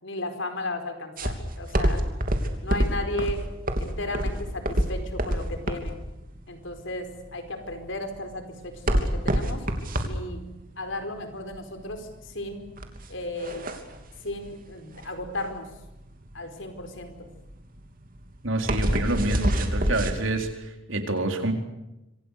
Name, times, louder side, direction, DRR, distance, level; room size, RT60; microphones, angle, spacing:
voice 1, 0.0-2.0 2.6-3.4 3.8-6.0 6.5-9.7 10.0-12.6 13.1-13.7 14.2-15.7 16.3-17.3, left 2 dB, 60° left, 7 dB, 4.7 m, -35 dB
sound 1, 1.2-20.1, equal, 40° right, 3.1 m, -27 dB
voice 2, 18.4-21.5, right 2 dB, 65° right, 5 dB, 4.2 m, -27 dB
27.0 x 25.5 x 6.7 m, 0.95 s
head